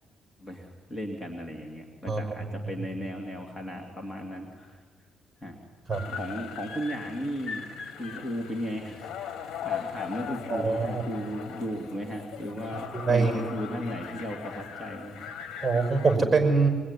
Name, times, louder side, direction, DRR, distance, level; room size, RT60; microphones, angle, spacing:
voice 1, 0.4-4.8 5.4-5.5 6.1-7.6 8.0-15.3, equal, 15° left, 2 dB, 2.9 m, -36 dB
voice 2, 2.1-2.7 5.9-6.1 10.5-11.0 12.9-13.5 15.6-16.7, right 4 dB, 15° right, 5 dB, 5.7 m, -24 dB
sound 1, 5.9-16.2, left 7 dB, 75° left, 1.7 m, -39 dB
24.5 x 21.0 x 10.0 m, 1.6 s
cardioid pair, 90°, 0 cm